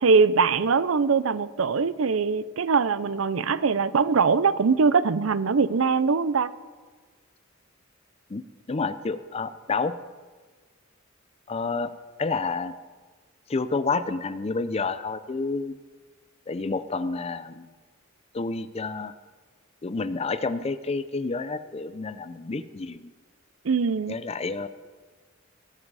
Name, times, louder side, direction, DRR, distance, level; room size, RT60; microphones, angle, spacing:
voice 1, 0.0-6.5 23.6-24.1, right 5 dB, 75° right, 16 dB, 0.6 m, -22 dB
voice 2, 8.3-9.9 11.5-11.9 12.2-12.7 13.5-15.7 16.5-17.7 18.3-19.1 19.8-23.1 24.1-24.7, left 4 dB, 30° left, 13 dB, 0.5 m, -29 dB
20.0 x 7.7 x 4.8 m, 1.4 s
head